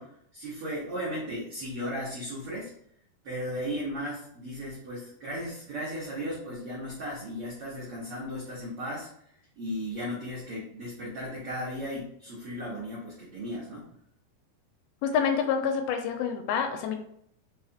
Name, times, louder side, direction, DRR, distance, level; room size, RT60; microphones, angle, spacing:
voice 1, 0.0-2.7 3.2-9.1 9.6-13.8, equal, 70° right, -7 dB, 1.3 m, -36 dB
voice 2, 15.0-17.0, left 7 dB, 90° left, 5 dB, 2.5 m, -27 dB
5.7 x 3.0 x 2.8 m, 0.68 s
omnidirectional pair, 4.4 m